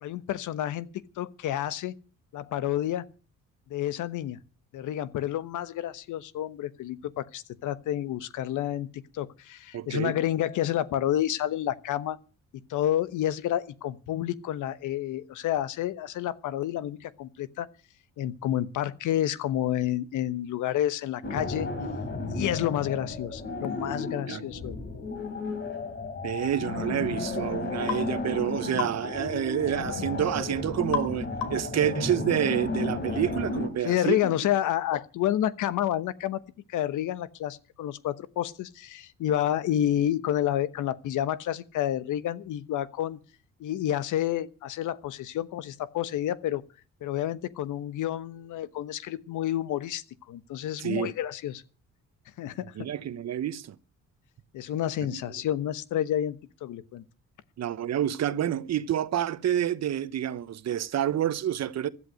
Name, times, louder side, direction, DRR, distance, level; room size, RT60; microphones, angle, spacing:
voice 1, 0.0-0.9 1.2-1.9 2.3-3.1 3.7-4.4 4.7-12.2 12.7-17.7 18.2-21.7 22.3-24.8 33.8-36.4 36.7-43.2 43.6-46.6 47.0-51.6 52.4-52.9 54.5-57.0, left 12 dB, 80° left, 1.1 m, -29 dB
voice 2, 9.7-10.2 24.3-24.4 26.2-34.2 50.8-51.1 52.8-53.8 55.1-55.2 57.6-61.9, right 10 dB, 60° right, 1.0 m, -28 dB
sound 1, 21.2-33.7, left 3 dB, 40° left, 3.6 m, -33 dB
sound 2, 27.9-28.1 28.8-29.0 30.9-31.1 31.4-31.7, left 7 dB, 60° left, 3.1 m, -31 dB
16.0 x 11.5 x 6.4 m
cardioid pair, 90°, 30 cm